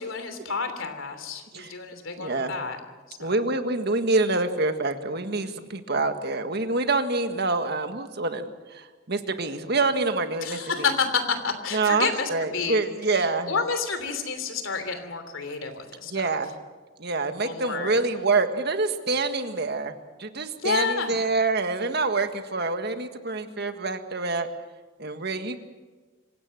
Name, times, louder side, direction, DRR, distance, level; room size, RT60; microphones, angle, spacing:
voice 1, 0.0-2.8 3.1-3.4 10.4-12.8 13.1-16.3 17.4-17.9 20.6-21.1, left 5 dB, 70° left, 8 dB, 3.2 m, -30 dB
voice 2, 2.2-2.5 3.2-10.9 11.7-13.5 16.1-16.6 17.0-19.9 20.2-24.5 25.0-25.6, right 3 dB, 50° right, 8 dB, 1.7 m, -26 dB
26.0 x 17.0 x 7.8 m, 1.3 s
head